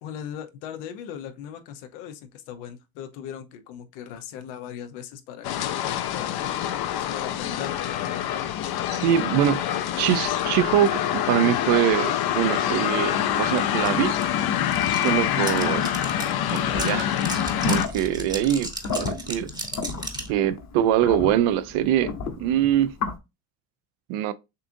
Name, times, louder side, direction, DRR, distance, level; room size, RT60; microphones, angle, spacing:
voice 1, 0.0-5.8 6.1-7.7, left 9 dB, 85° left, 0.9 m, -39 dB
sound 1, 5.4-17.9, left 10 dB, 50° left, 0.6 m, -25 dB
voice 2, 9.0-9.6 10.0-14.2 14.9-15.9 16.5-17.1 17.7-19.5 20.3-23.0 24.1-24.3, right 11 dB, 80° right, 0.6 m, -23 dB
sound 2, 13.6-13.7 13.9-20.3, right 2 dB, 10° right, 0.9 m, -35 dB
sound 3, 17.6-23.1, left 4 dB, 35° left, 1.0 m, -32 dB
6.6 x 2.5 x 2.6 m
supercardioid pair, 95°, 47 cm